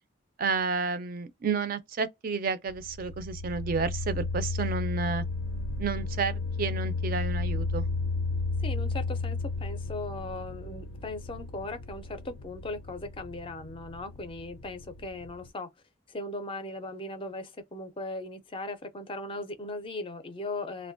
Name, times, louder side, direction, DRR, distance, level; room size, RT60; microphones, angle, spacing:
voice 1, 0.4-5.2 5.8-7.8, right 5 dB, 45° right, 0.4 m, -31 dB
sound 1, 2.7-15.5, left 3 dB, 85° left, 0.4 m, -33 dB
voice 2, 8.6-15.7 16.1-20.9, left 2 dB, 25° left, 0.4 m, -38 dB
2.4 x 2.2 x 2.5 m
head